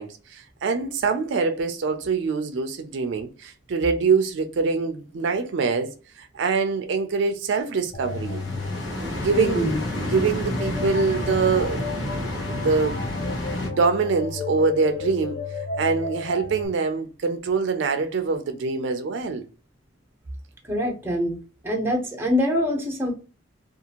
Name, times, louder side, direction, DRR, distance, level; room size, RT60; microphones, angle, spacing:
voice 1, 0.0-8.4 9.0-11.8 12.3-13.0 13.6-15.4 15.8-19.4, right 4 dB, 70° right, 0.4 m, -24 dB
sound 1, 7.9-16.7, left 4 dB, 40° left, 0.4 m, -34 dB
sound 2, 8.0-13.7, left 1 dB, 85° left, 1.0 m, -30 dB
voice 2, 9.3-9.8 20.7-21.3 21.6-23.1, equal, 10° right, 0.8 m, -24 dB
2.6 x 2.4 x 2.8 m
head